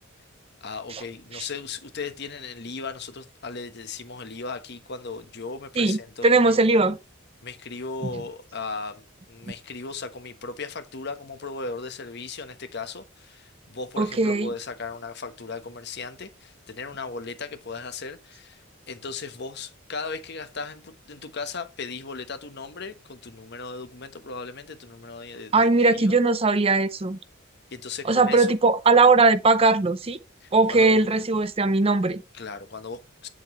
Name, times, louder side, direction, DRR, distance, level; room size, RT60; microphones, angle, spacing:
voice 1, 0.6-6.5 7.4-26.1 27.7-28.5 30.4-31.0 32.3-33.3, left 4 dB, 55° left, 1.1 m, -37 dB
voice 2, 5.8-7.0 14.0-14.5 25.5-27.2 28.0-30.2 30.5-32.2, right 3 dB, 30° right, 0.6 m, -20 dB
7.8 x 7.5 x 3.0 m
head